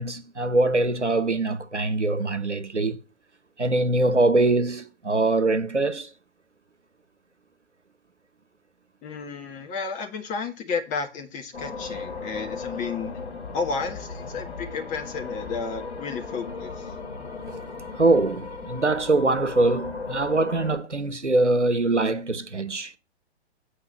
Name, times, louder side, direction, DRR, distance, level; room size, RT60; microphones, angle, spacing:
voice 1, 0.0-3.0 3.6-6.1 17.9-22.9, right 2 dB, 90° right, 1.0 m, -23 dB
voice 2, 9.0-13.1 13.5-16.9, left 5 dB, 20° left, 1.7 m, -32 dB
sound 1, 11.5-20.8, left 4 dB, 65° left, 3.0 m, -36 dB
8.8 x 4.8 x 7.4 m
figure-of-eight pair, 115°, 34 cm